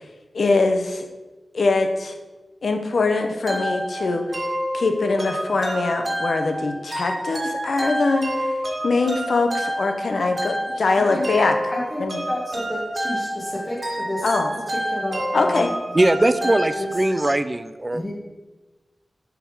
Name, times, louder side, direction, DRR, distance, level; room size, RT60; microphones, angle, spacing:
voice 1, 0.3-1.1 1.5-2.1 2.6-4.3 4.7-8.5 8.8-11.5 12.0-12.2 14.2-14.5 15.3-15.7, left 3 dB, 75° left, 5 dB, 0.7 m, -22 dB
sound 1, 3.5-17.3, equal, 50° right, 1.5 m, -29 dB
voice 2, 11.7-14.3 14.7-15.7 16.4-16.9 17.9-18.1, left 1 dB, 20° left, -4 dB, 1.4 m, -30 dB
voice 3, 15.9-18.1, right 1 dB, 25° right, 12 dB, 0.4 m, -20 dB
7.0 x 3.7 x 4.7 m, 1.2 s
wide cardioid pair, 75°, 0 cm